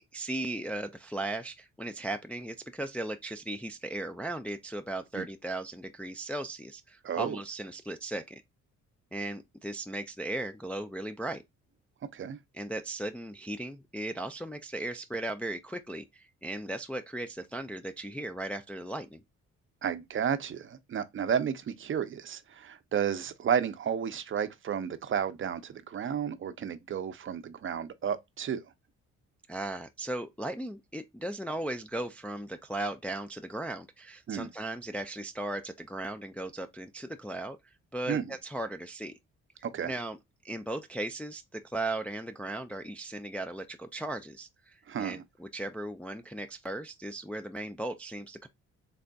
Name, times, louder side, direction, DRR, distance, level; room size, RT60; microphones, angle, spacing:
voice 1, 0.1-8.4 9.1-11.4 12.5-19.2 29.5-37.6 37.9-39.1 39.8-40.2 40.4-48.5, right 1 dB, 5° left, 0.3 m, -37 dB
voice 2, 7.0-7.4 12.1-12.4 19.8-28.6 34.3-34.5 38.1-38.3 39.6-39.9 44.9-45.2, right 8 dB, 40° right, 0.6 m, -32 dB
3.8 x 3.4 x 2.3 m
cardioid pair, 90°, 30 cm